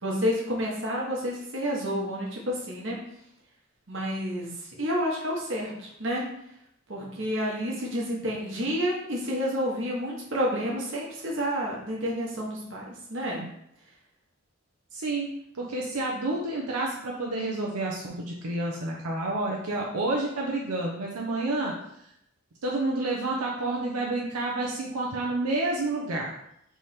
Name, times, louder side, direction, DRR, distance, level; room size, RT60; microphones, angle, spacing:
voice 1, 0.0-3.0 3.9-6.3 6.9-13.4, equal, 55° right, -3 dB, 1.2 m, -30 dB
voice 2, 14.9-21.7 22.6-26.3, right 2 dB, 90° right, -2 dB, 0.6 m, -29 dB
3.4 x 3.2 x 4.2 m, 0.76 s
head